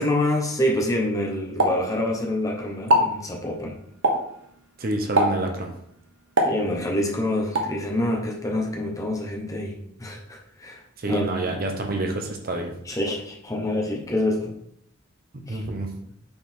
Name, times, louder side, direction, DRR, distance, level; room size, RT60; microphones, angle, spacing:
voice 1, 0.0-3.8 6.4-10.8 11.1-11.6 12.9-14.5 15.5-15.6, left 1 dB, 15° left, -1 dB, 1.0 m, -26 dB
Explosion, 1.6-2.5 2.8-3.2 4.0-4.4 5.2-5.5 6.4-7.1 7.6-7.8, right 1 dB, 65° right, 1.0 m, -22 dB
voice 2, 4.8-5.7 11.0-12.7 15.3-15.9, right 2 dB, 45° right, 4 dB, 0.8 m, -28 dB
5.7 x 4.1 x 4.4 m, 0.72 s
head